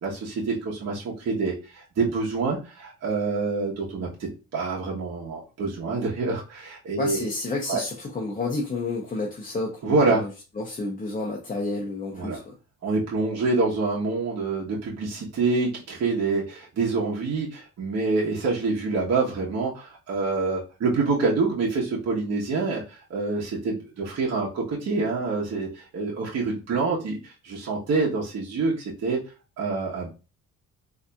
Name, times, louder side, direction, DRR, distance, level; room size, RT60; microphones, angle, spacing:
voice 1, 0.0-7.3 7.7-7.8 9.8-10.3 12.1-12.4 12.8-29.2 29.6-30.1, right 3 dB, 55° right, -4 dB, 1.1 m, -26 dB
voice 2, 7.0-10.3 10.6-12.5, left 3 dB, 30° left, -1 dB, 0.8 m, -30 dB
4.0 x 2.8 x 2.3 m, 0.31 s
cardioid pair, 90°, 30 cm